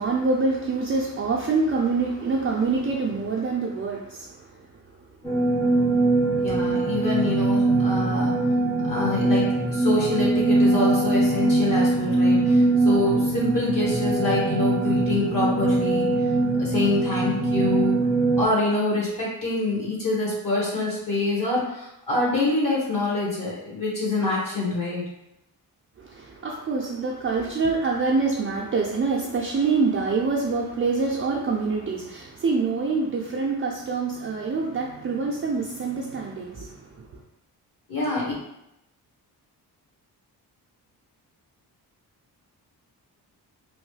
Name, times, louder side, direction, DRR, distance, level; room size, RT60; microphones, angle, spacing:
voice 1, 0.0-4.4 26.0-36.8, right 4 dB, 35° right, -3 dB, 0.4 m, -25 dB
sound 1, 5.2-18.4, right 2 dB, 5° left, 0.7 m, -22 dB
voice 2, 6.4-8.4 8.9-16.1 16.6-18.0 18.4-25.0 37.9-38.3, left 2 dB, 50° left, -5 dB, 1.3 m, -26 dB
3.0 x 2.1 x 3.1 m, 0.86 s
cardioid pair, 75°, 40 cm